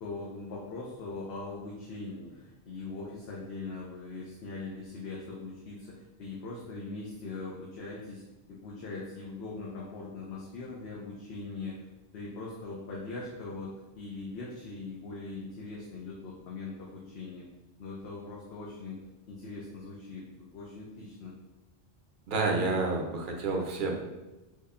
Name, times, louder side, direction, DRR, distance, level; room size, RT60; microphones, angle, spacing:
voice 1, 0.0-8.2 8.5-11.7 12.1-17.4 17.8-19.0 19.3-21.3, left 3 dB, 80° left, -4 dB, 0.9 m, -41 dB
voice 2, 22.3-23.9, right 3 dB, 60° right, 1 dB, 0.7 m, -29 dB
3.5 x 2.2 x 3.5 m, 1.0 s
omnidirectional pair, 1.1 m